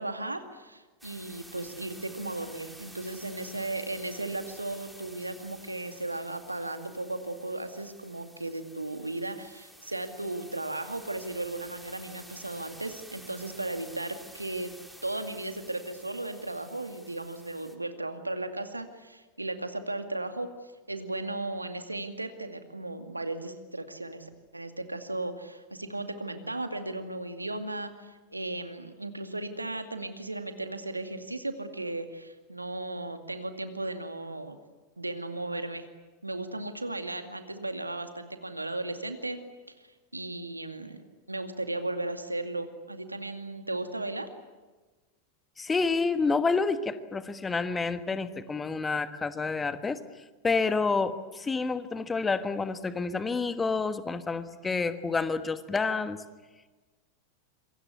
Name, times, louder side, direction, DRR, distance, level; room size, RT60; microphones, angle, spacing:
voice 1, 0.0-14.7 15.0-34.6 35.0-35.9 36.2-39.4 39.8-39.9 40.1-44.3, right 2 dB, 85° right, 8 dB, 2.2 m, -36 dB
sound 1, 1.0-17.7, equal, ahead, 3.3 m, -51 dB
voice 2, 45.6-50.0 50.4-56.2, left 4 dB, 15° left, 12 dB, 1.4 m, -29 dB
27.0 x 24.0 x 8.3 m, 1.3 s
figure-of-eight pair, 90°, 0 cm